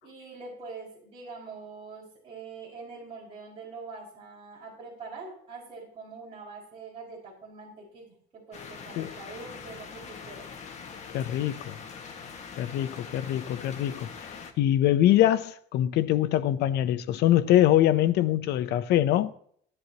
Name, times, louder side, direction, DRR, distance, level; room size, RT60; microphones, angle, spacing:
voice 1, 0.0-10.5, right 4 dB, 30° right, 5.5 m, -44 dB
sound 1, 8.5-14.5, left 5 dB, 40° left, 1.9 m, -43 dB
voice 2, 11.1-11.7 12.6-19.3, left 12 dB, 75° left, 0.8 m, -24 dB
17.5 x 11.0 x 3.0 m
cardioid pair, 160°, 17 cm